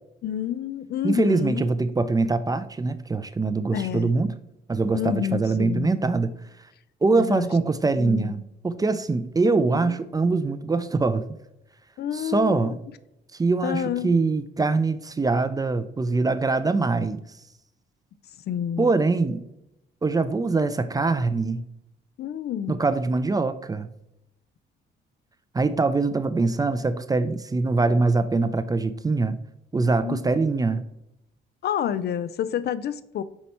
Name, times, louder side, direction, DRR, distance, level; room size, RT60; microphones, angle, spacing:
voice 1, 0.2-1.7 3.7-4.1 4.9-5.9 7.2-7.5 8.0-8.4 9.8-10.0 12.0-12.8 13.6-14.1 18.5-18.9 22.2-22.8 30.0-30.3 31.6-33.2, left 10 dB, 55° left, 15 dB, 0.4 m, -29 dB
voice 2, 1.0-4.3 4.7-6.3 7.0-11.2 12.1-12.8 13.3-17.2 18.8-19.5 20.0-21.6 22.7-23.9 25.5-29.4 29.7-30.8, right 3 dB, 20° right, 12 dB, 0.4 m, -23 dB
5.6 x 4.3 x 4.2 m, 0.84 s
cardioid pair, 90°, 20 cm